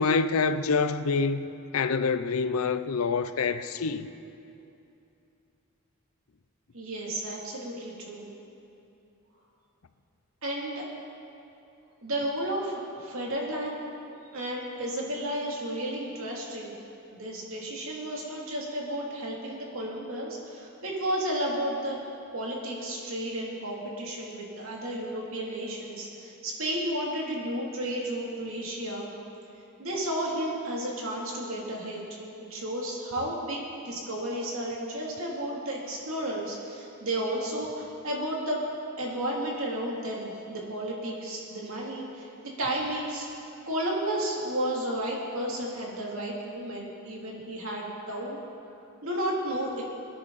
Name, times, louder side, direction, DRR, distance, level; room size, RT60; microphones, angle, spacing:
voice 1, 0.0-1.5 1.7-4.1, left 4 dB, 70° left, 0.6 m, -26 dB
voice 2, 6.7-8.3 10.4-10.8 12.0-13.8 14.3-16.7 17.1-22.0 22.3-29.1 29.8-32.2 32.5-38.6 39.0-42.3 42.6-43.3 43.7-48.4 49.0-49.8, right 1 dB, 65° right, 2.9 m, -32 dB
23.0 x 10.0 x 4.1 m
head